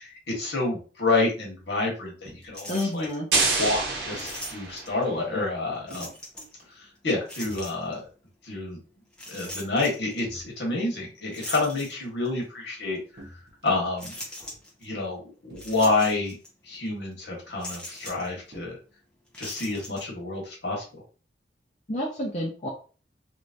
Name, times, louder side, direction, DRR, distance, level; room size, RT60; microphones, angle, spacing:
voice 1, 0.0-3.1 3.6-6.1 6.7-8.0 8.4-8.8 9.3-13.2 13.6-14.1 14.8-16.4 16.6-18.8 19.4-21.0, left 3 dB, 65° left, -1 dB, 1.5 m, -28 dB
sound 1, 2.2-2.5 4.1-4.4 5.9-6.2 7.4-7.7 8.0-8.3 8.7-8.8 10.2-10.5 13.2-13.8 15.5-16.0 16.9-17.0 18.5-18.7, right 1 dB, 65° right, 1.1 m, -47 dB
sound 2, 2.5-3.2 4.1-5.0 5.9-6.6 7.3-8.0 9.1-10.2 11.3-12.4 12.9-13.0 14.0-14.9 15.6-16.5 16.7-16.9 17.6-18.3 19.3-20.1, left 1 dB, 5° left, 1.0 m, -40 dB
voice 2, 2.7-3.3 21.9-22.7, left 1 dB, 40° left, -4 dB, 0.7 m, -29 dB
sound 3, 3.3-5.1, right 3 dB, 85° right, 1.0 m, -27 dB
3.2 x 3.1 x 2.6 m, 0.37 s
head